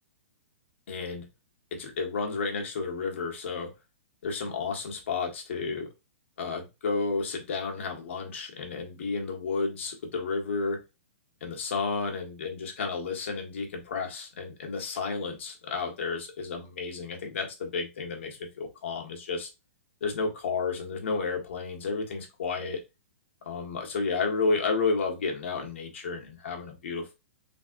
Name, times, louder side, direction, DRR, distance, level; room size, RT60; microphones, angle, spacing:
voice 1, 0.9-1.3 1.7-3.7 4.2-5.9 6.4-10.8 11.4-19.5 20.0-22.8 23.4-27.1, left 4 dB, 60° left, 2 dB, 1.3 m, -31 dB
3.5 x 3.2 x 2.5 m, 0.24 s
hypercardioid pair, 175°, 7 cm